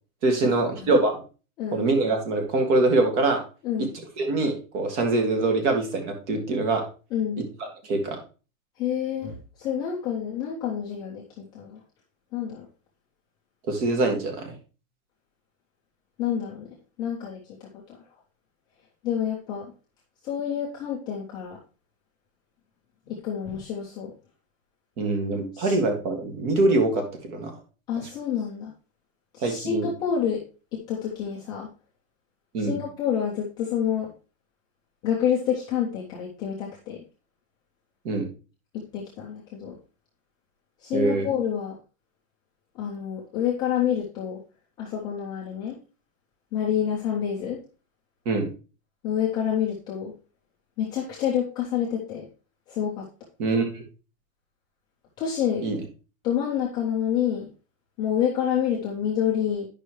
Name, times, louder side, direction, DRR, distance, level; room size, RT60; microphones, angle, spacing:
voice 1, 0.2-1.2 1.7-3.4 3.8-3.9 4.2-6.8 7.4-8.2 13.7-14.5 25.0-27.5 28.0-28.1 29.4-29.9 32.5-32.8 38.0-38.3 40.9-41.3 48.3-48.5 53.4-53.8 55.6-55.8, right 2 dB, 55° right, 4 dB, 2.2 m, -24 dB
voice 2, 7.1-7.4 8.8-9.3 9.6-11.2 11.5-11.7 12.3-12.6 16.2-16.6 17.0-17.4 19.0-19.6 20.3-21.6 23.1-24.1 25.5-25.7 27.9-28.7 29.5-30.4 30.7-31.7 32.7-34.1 35.0-37.0 38.7-39.8 40.8-41.7 42.8-44.4 44.8-45.7 46.5-47.6 49.0-50.1 50.8-52.2 52.7-53.0 55.2-55.6 56.2-57.4 58.0-59.7, left 9 dB, 10° left, -5 dB, 0.3 m, -27 dB
10.0 x 5.4 x 3.1 m, 0.34 s
supercardioid pair, 160°, 43 cm